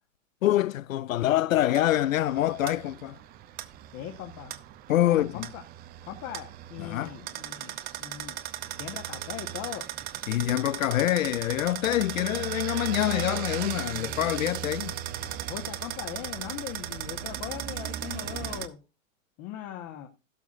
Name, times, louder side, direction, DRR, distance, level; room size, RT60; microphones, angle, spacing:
voice 1, 0.4-3.2 4.9-5.4 6.8-7.1 10.3-14.9, left 13 dB, 75° left, 0.5 m, -25 dB
sound 1, 1.7-18.7, right 12 dB, 25° right, 0.6 m, -37 dB
voice 2, 3.9-4.5 5.0-5.6 6.1-8.4 8.8-9.9 15.2-18.8 19.4-20.1, left 11 dB, 35° left, 1.3 m, -40 dB
17.0 x 7.2 x 2.5 m
hypercardioid pair, 110°, 41 cm